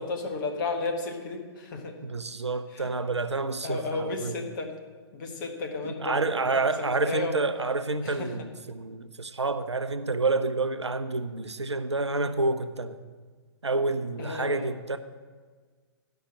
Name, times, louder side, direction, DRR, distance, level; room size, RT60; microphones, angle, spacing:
voice 1, 0.0-2.0 2.7-2.9 3.6-4.7 5.1-7.4 8.0-8.3 14.2-14.7, left 3 dB, 45° left, 4 dB, 1.6 m, -33 dB
voice 2, 2.0-4.4 5.8-13.0 13.6-15.0, right 3 dB, 90° right, 11 dB, 0.7 m, -29 dB
11.5 x 5.8 x 7.5 m, 1.5 s
figure-of-eight pair, 120°, 14 cm